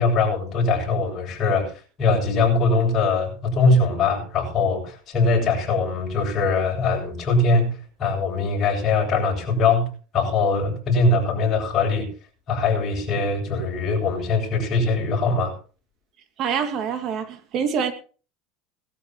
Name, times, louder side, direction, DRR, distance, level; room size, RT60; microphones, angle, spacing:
voice 1, 0.0-1.7 2.0-12.1 12.5-15.5, left 3 dB, 35° left, 7.9 m, -22 dB
voice 2, 16.4-17.9, right 7 dB, 45° right, 2.4 m, -25 dB
20.5 x 13.0 x 3.1 m
supercardioid pair, 130°, 0 cm